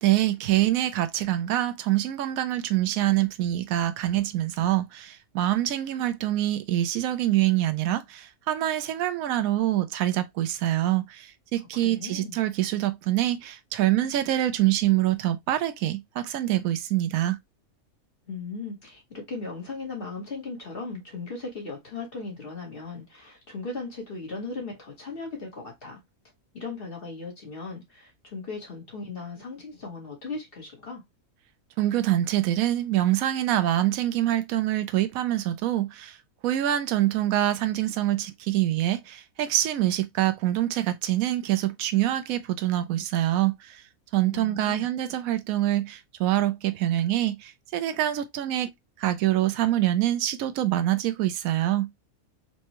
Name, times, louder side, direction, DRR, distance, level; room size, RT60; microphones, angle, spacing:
voice 1, 0.0-17.4 31.8-36.2 36.4-43.8 44.1-48.7 49.0-51.9, right 13 dB, 75° right, 1.0 m, -25 dB
voice 2, 11.7-12.4 18.3-26.0 26.5-31.0 44.3-44.8, left 3 dB, 40° left, 1.4 m, -37 dB
4.2 x 2.3 x 2.8 m
omnidirectional pair, 1.5 m